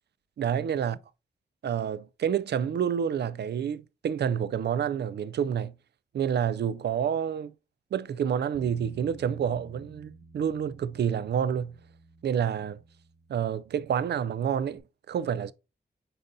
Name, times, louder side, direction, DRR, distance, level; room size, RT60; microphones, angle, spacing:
voice 1, 0.4-1.0 1.6-5.7 6.1-7.5 7.9-11.8 12.2-12.8 13.3-14.8 15.1-15.5, right 8 dB, 80° right, 0.4 m, -28 dB
Bass guitar, 8.5-14.8, right 2 dB, 45° left, 1.8 m, -54 dB
8.9 x 4.0 x 2.6 m
wide cardioid pair, 105°, 17 cm